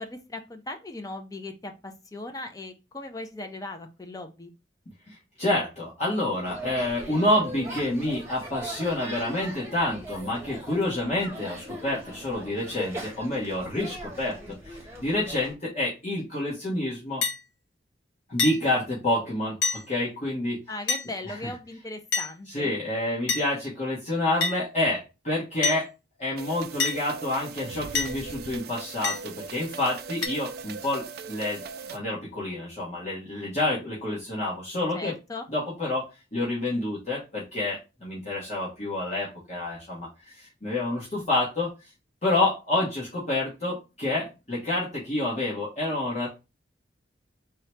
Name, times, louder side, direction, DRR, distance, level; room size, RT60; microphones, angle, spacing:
voice 1, 0.0-4.5 20.7-22.7 34.9-35.5, left 2 dB, 20° left, 6 dB, 0.5 m, -38 dB
voice 2, 5.1-14.4 14.6-17.2 18.3-20.6 21.3-21.4 22.5-25.9 26.2-31.6 31.9-35.1 35.5-41.9 42.2-46.3, left 1 dB, 35° left, -6 dB, 1.1 m, -28 dB
sound 1, 6.4-15.5, right 1 dB, 15° right, 0.9 m, -40 dB
sound 2, 17.2-17.4 18.4-18.6 19.6-19.8 20.9-21.1 22.1-22.3 23.3-23.5 24.4-24.6 25.6-25.8 26.8-27.0 28.0-28.2 29.0-29.2 30.2-30.3, left 5 dB, 75° left, 0.7 m, -26 dB
sound 3, 26.4-32.0, right 5 dB, 55° right, 0.4 m, -39 dB
3.7 x 2.2 x 4.3 m, 0.28 s
head